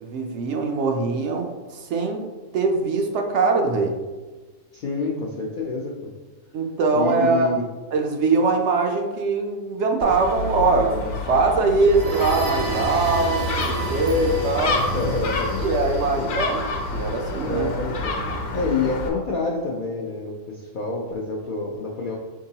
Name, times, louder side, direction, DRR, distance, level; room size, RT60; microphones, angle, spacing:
voice 1, 0.0-2.3 2.5-4.0 6.5-7.5 7.9-14.8 15.6-16.6 16.9-17.7 18.1-18.4, right 3 dB, 65° right, 3 dB, 0.8 m, -22 dB
voice 2, 4.7-5.9 6.9-7.6 14.6-15.6 16.2-16.4 17.4-18.2 18.5-22.2, left 3 dB, 65° left, -2 dB, 0.5 m, -28 dB
Gull seagull, 10.0-19.1, left 3 dB, 85° left, 1.1 m, -29 dB
sound 1, 11.6-17.4, right 2 dB, 85° right, 1.3 m, -30 dB
4.6 x 3.7 x 2.7 m, 1.2 s
omnidirectional pair, 1.4 m